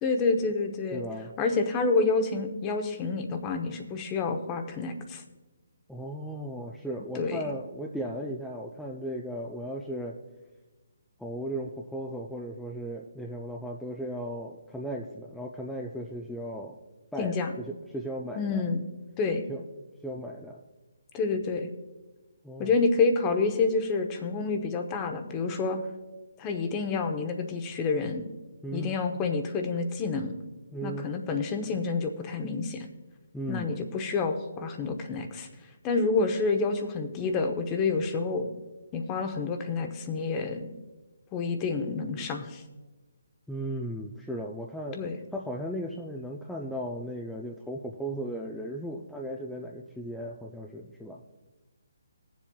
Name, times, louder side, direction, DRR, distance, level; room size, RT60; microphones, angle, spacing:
voice 1, 0.0-1.0 1.4-5.2 7.1-7.4 17.2-17.5 18.3-18.8 19.2-19.4 21.1-21.7 22.6-25.8 26.4-28.3 28.7-30.3 30.8-32.9 33.5-35.5 35.8-38.5 38.9-40.7 41.3-42.6 45.0-45.2, left 4 dB, 20° left, 6 dB, 0.9 m, -28 dB
voice 2, 0.9-1.3 5.9-10.2 11.2-16.8 17.1-17.3 17.7-18.6 19.5-19.6 20.0-20.6 22.4-22.7 28.6-29.0 30.7-31.1 33.3-33.7 43.5-45.0 45.3-51.2, equal, ahead, -2 dB, 0.5 m, -36 dB
21.0 x 7.3 x 2.3 m, 1.2 s
hypercardioid pair, 150°, 0 cm